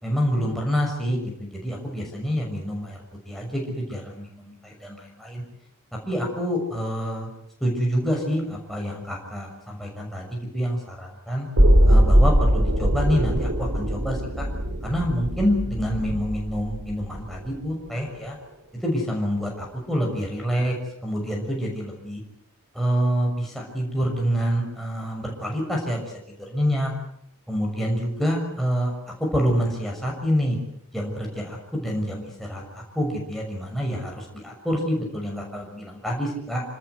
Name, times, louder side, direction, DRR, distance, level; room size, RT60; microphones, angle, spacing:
voice 1, 0.0-5.4 6.1-7.3 7.6-11.5 11.8-14.5 14.8-18.4 18.7-20.8 21.0-22.2 22.7-26.9 27.5-30.6 30.9-36.6, equal, ahead, -2 dB, 6.4 m, -27 dB
sound 1, 11.6-17.5 17.9-18.0, equal, 80° right, 3.4 m, -21 dB
28.0 x 19.5 x 8.1 m, 0.72 s
head